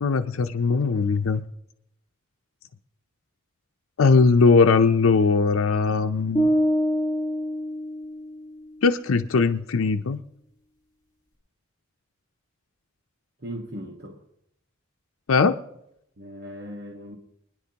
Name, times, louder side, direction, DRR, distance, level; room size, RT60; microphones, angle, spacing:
voice 1, 0.0-1.4 4.0-6.5 8.8-10.2 15.3-15.6, left 4 dB, 90° left, 6 dB, 0.6 m, -20 dB
sound 1, 6.3-8.5, equal, 20° left, 5.3 m, -25 dB
voice 2, 13.4-14.2 16.2-17.2, equal, 50° right, 1 dB, 1.4 m, -37 dB
24.5 x 10.5 x 2.9 m, 0.76 s
head